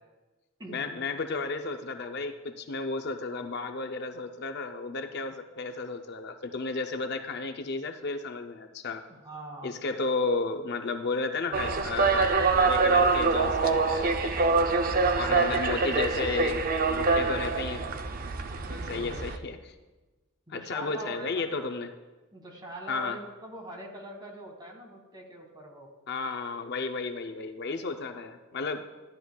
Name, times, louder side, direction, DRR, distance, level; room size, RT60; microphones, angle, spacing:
voice 1, 0.7-9.0 9.6-14.4 15.2-17.8 18.9-19.6 20.5-21.9 22.9-23.2 26.1-28.8, left 3 dB, 50° left, 7 dB, 0.5 m, -33 dB
voice 2, 9.1-9.7 15.2-15.5 18.6-19.2 20.5-21.7 22.3-25.9 27.7-28.0, right 1 dB, 20° right, 1 dB, 1.5 m, -43 dB
sound 1, 11.5-19.4, right 4 dB, 40° right, 0.4 m, -25 dB
13.0 x 11.0 x 2.3 m, 1.2 s
head